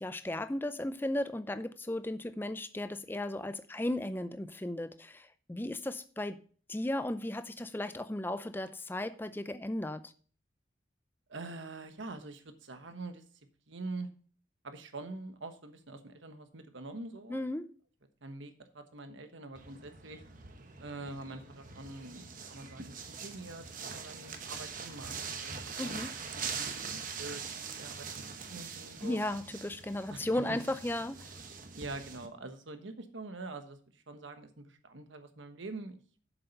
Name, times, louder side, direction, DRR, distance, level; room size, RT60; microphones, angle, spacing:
voice 1, 0.0-6.4 6.7-10.1 17.3-17.6 25.8-26.1 29.0-31.3, left 1 dB, 10° left, 0.4 m, -35 dB
voice 2, 11.3-13.2 13.7-14.1 14.6-17.4 18.2-20.2 20.8-29.2 30.1-30.6 31.7-36.0, right 2 dB, 75° right, 1.2 m, -45 dB
sound 1, 19.5-32.3, right 5 dB, 45° right, 1.0 m, -43 dB
7.6 x 7.0 x 5.3 m
head